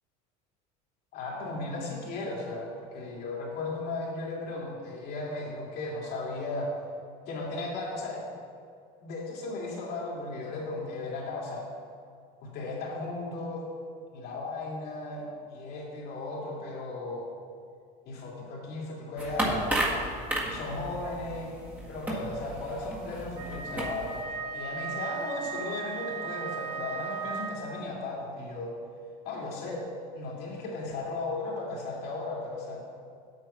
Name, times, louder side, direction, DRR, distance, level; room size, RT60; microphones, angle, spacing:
voice 1, 1.1-6.7 7.3-8.3 9.0-11.7 12.4-13.7 14.1-17.3 18.0-19.6 20.5-24.2 24.5-28.8 29.2-32.8, left 2 dB, 55° left, -3 dB, 2.7 m, -36 dB
sound 1, 19.2-24.2, right 1 dB, 10° right, 1.8 m, -33 dB
Wind instrument woodwind instrument, 23.3-27.9, right 5 dB, 85° right, 1.5 m, -36 dB
8.2 x 7.6 x 5.7 m, 2.3 s
cardioid pair, 135°, 20 cm